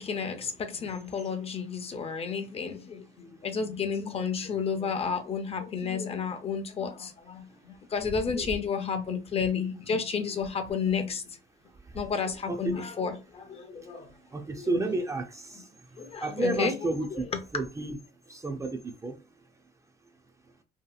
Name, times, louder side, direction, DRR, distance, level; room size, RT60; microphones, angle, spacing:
voice 1, 0.0-11.2 11.9-14.1 14.6-14.8 16.0-16.7, left 6 dB, 35° left, 0.5 m, -31 dB
voice 2, 11.7-12.0 12.5-12.8 13.8-17.3 17.5-18.0 18.3-19.2, right 2 dB, 20° right, 0.4 m, -32 dB
2.7 x 2.4 x 2.3 m
cardioid pair, 110°, 17 cm